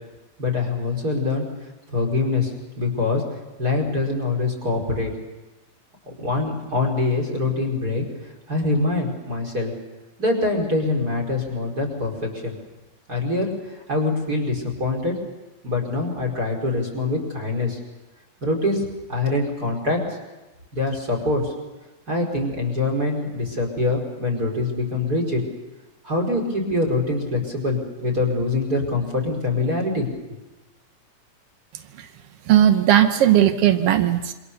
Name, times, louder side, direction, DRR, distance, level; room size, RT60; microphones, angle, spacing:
voice 1, 0.4-1.5 1.9-3.2 3.6-5.1 6.1-8.0 8.5-9.7 10.2-12.5 13.1-15.1 15.6-17.8 18.4-20.0 20.7-21.5 22.1-25.4 26.0-30.4, left 2 dB, 25° right, 3 dB, 5.2 m, -24 dB
voice 2, 32.5-34.3, right 11 dB, 80° right, 8 dB, 1.3 m, -17 dB
27.5 x 26.0 x 7.0 m, 1.1 s
omnidirectional pair, 4.1 m